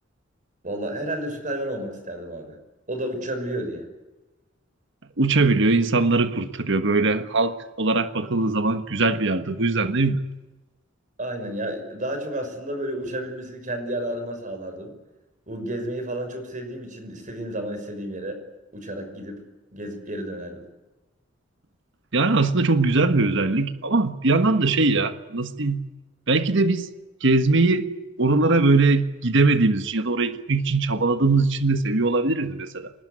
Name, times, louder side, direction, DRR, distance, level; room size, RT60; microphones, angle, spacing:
voice 1, 0.6-2.6 2.9-3.9 11.2-14.9 15.5-18.4 18.7-19.4 19.7-20.6, right 1 dB, 40° right, 5.9 m, -31 dB
voice 2, 5.2-10.2 22.1-25.8 26.3-26.9 27.2-27.9 28.2-32.9, right 3 dB, 65° right, 1.4 m, -21 dB
25.5 x 20.0 x 9.5 m
head